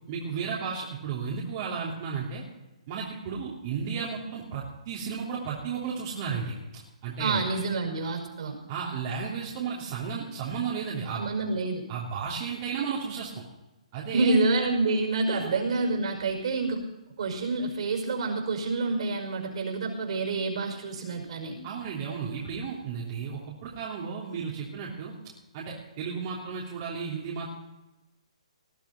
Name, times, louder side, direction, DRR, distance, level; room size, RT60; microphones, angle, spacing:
voice 1, 0.1-2.4 2.9-7.4 8.7-11.3 11.9-13.4 13.9-14.4 15.3-15.5 21.6-25.1 25.5-27.5, right 6 dB, 40° right, -4 dB, 3.1 m, -33 dB
voice 2, 7.2-8.6 11.1-11.8 14.1-16.8 17.2-21.6, right 3 dB, 60° right, 3 dB, 5.5 m, -28 dB
19.5 x 12.0 x 4.3 m, 1.0 s
hypercardioid pair, 140°, 4 cm